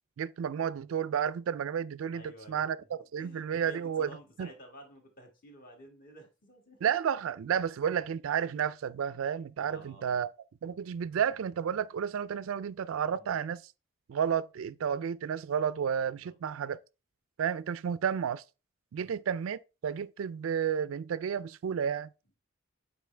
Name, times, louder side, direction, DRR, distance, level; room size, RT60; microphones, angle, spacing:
voice 1, 0.2-2.2 2.5-2.8 3.1-4.1 4.4-4.5 6.8-10.3 10.6-13.6 14.1-16.8 17.4-18.4 18.9-22.1, right 8 dB, 75° right, 0.3 m, -31 dB
voice 2, 2.1-6.9 9.7-10.3 13.1-13.4 16.2-16.3 19.0-19.2, left 1 dB, 40° left, 1.6 m, -52 dB
8.3 x 4.1 x 3.3 m
head